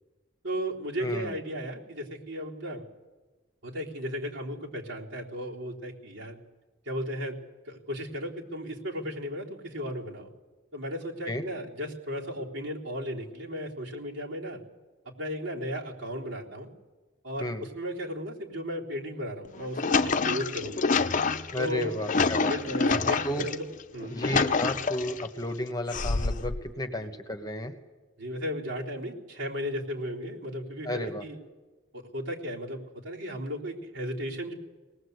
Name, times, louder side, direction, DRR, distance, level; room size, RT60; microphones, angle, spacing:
voice 1, 0.4-2.8 3.6-6.4 6.9-7.4 7.7-10.3 10.7-14.6 15.2-16.7 17.2-20.9 21.6-23.7 23.9-24.2 27.0-27.1 28.2-31.4 31.9-34.5, equal, 75° right, -2 dB, 3.6 m, -35 dB
voice 2, 1.0-1.3 11.3-11.4 17.4-17.6 21.5-22.5 22.8-23.0 23.2-23.5 24.1-27.7 30.8-31.2, left 1 dB, 20° left, 7 dB, 1.3 m, -33 dB
sound 1, 19.4-23.5 24.0-25.3 25.9-26.6, left 4 dB, 40° left, 0.7 m, -27 dB
24.5 x 19.0 x 8.1 m, 1.3 s
head